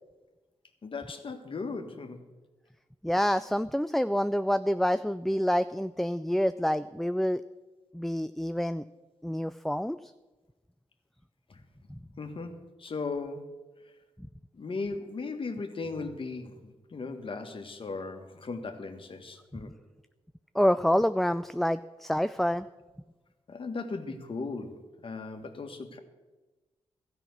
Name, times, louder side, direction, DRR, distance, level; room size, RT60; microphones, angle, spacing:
voice 1, 0.8-2.2 11.5-11.6 12.2-13.5 14.5-19.7 23.5-26.0, left 4 dB, 50° left, 6 dB, 1.5 m, -37 dB
voice 2, 3.0-7.4 7.9-8.8 9.2-10.1 11.9-12.0 20.5-22.7, equal, ahead, 12 dB, 0.3 m, -27 dB
13.0 x 5.9 x 9.5 m, 1.2 s
cardioid pair, 55°, 12 cm